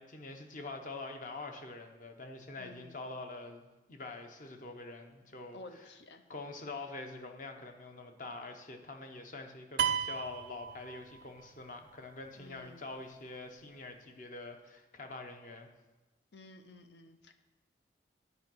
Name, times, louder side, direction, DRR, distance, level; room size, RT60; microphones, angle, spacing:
voice 1, 0.0-5.8 6.3-15.7, left 2 dB, 45° left, 5 dB, 0.8 m, -45 dB
voice 2, 2.6-3.0 5.5-6.2 12.4-12.8 16.3-17.4, left 2 dB, 70° left, 8 dB, 0.7 m, -52 dB
sound 1, 9.8-11.5, right 8 dB, 75° right, 0.5 m, -34 dB
9.9 x 4.8 x 6.2 m, 1.1 s
head